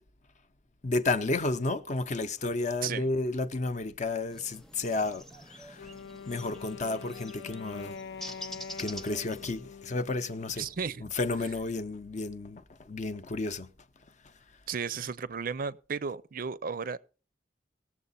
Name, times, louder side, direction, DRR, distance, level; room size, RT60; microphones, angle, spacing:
voice 1, 0.8-5.2 5.5-5.9 6.3-8.0 8.8-10.6 11.0-13.7, left 2 dB, 40° left, 0.7 m, -32 dB
sound 1, 4.3-9.5, equal, ahead, 0.7 m, -46 dB
Wind instrument woodwind instrument, 5.8-10.8, left 6 dB, 80° left, 0.5 m, -45 dB
voice 2, 10.6-11.1 14.7-17.0, right 6 dB, 50° right, 0.5 m, -34 dB
18.5 x 7.3 x 4.1 m
head